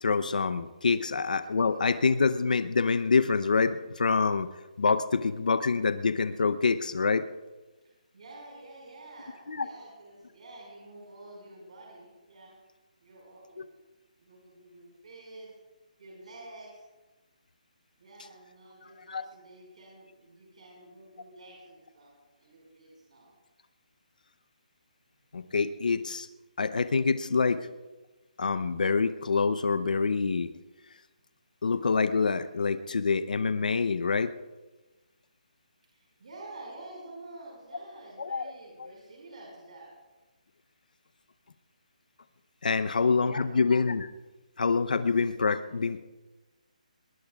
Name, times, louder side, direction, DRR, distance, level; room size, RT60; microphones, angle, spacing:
voice 1, 0.0-4.5 4.8-7.3 9.5-9.7 19.1-19.2 25.3-26.3 26.6-27.7 28.4-30.5 31.6-34.3 38.2-38.5 38.8-38.9 42.6-44.1 44.6-46.0, left 4 dB, 75° left, 12 dB, 0.7 m, -26 dB
voice 2, 7.8-12.5 13.0-13.7 14.2-15.5 16.0-16.8 18.0-23.3 35.9-39.9 42.7-43.6, right 2 dB, 55° right, -3 dB, 5.2 m, -49 dB
21.5 x 20.0 x 2.4 m, 1.2 s
hypercardioid pair, 175°, 4 cm